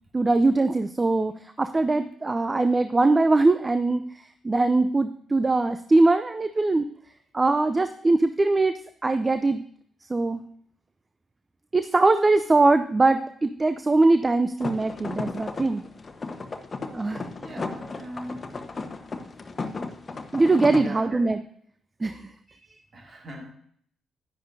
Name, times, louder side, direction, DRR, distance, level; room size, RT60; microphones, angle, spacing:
voice 1, 0.1-6.9 7.3-8.7 9.0-9.6 10.0-10.4 11.7-15.8 16.9-17.2 20.3-21.4 22.0-22.6, right 2 dB, 30° right, 0.5 m, -22 dB
sound 1, 14.6-20.8, left 3 dB, 40° left, 1.0 m, -35 dB
voice 2, 17.4-18.7 20.7-21.2 22.9-23.5, right 1 dB, 45° right, 2.2 m, -40 dB
10.5 x 10.0 x 2.7 m
hypercardioid pair, 40°, 0 cm